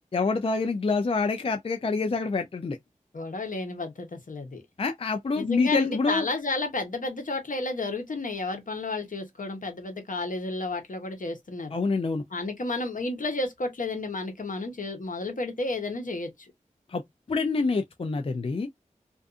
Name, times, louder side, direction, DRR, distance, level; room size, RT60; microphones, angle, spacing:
voice 1, 0.1-2.8 4.8-6.3 11.7-12.2 16.9-17.0 17.3-18.7, left 4 dB, 45° left, 0.4 m, -26 dB
voice 2, 3.1-4.6 5.4-11.7 12.3-16.5, left 2 dB, 70° left, 0.9 m, -32 dB
2.5 x 2.3 x 2.3 m
wide cardioid pair, 60°, 14 cm